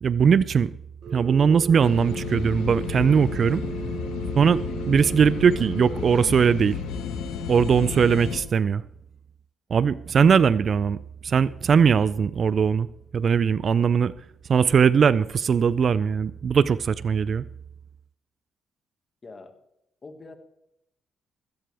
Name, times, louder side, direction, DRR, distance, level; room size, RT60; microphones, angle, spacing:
voice 1, 0.0-0.7 1.1-3.6 4.4-4.6 4.9-6.8 7.5-8.8 9.7-11.0 11.2-12.9 13.1-14.1 14.5-17.4, right 6 dB, 50° right, 0.4 m, -20 dB
Telephone, 1.0-6.0, right 6 dB, 80° right, 4.4 m, -36 dB
sound 1, 1.8-8.4, left 6 dB, 90° left, 1.5 m, -32 dB
voice 2, 4.7-5.0 13.4-13.6 19.2-19.5 20.0-20.4, left 3 dB, 35° left, 1.9 m, -44 dB
16.5 x 13.5 x 3.4 m
cardioid pair, 90°, 0 cm